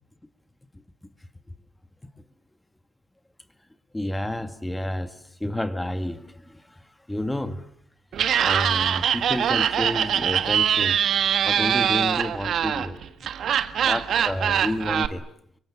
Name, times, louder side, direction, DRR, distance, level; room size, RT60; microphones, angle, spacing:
voice 1, 3.9-6.8 7.1-7.7 8.4-11.0 11.5-13.3 13.7-15.3, left 1 dB, 10° left, 9 dB, 2.2 m, -30 dB
Laughter, 8.1-15.1, right 9 dB, 65° right, 1.6 m, -23 dB
28.0 x 24.5 x 8.7 m, 0.67 s
cardioid pair, 90°, 0 cm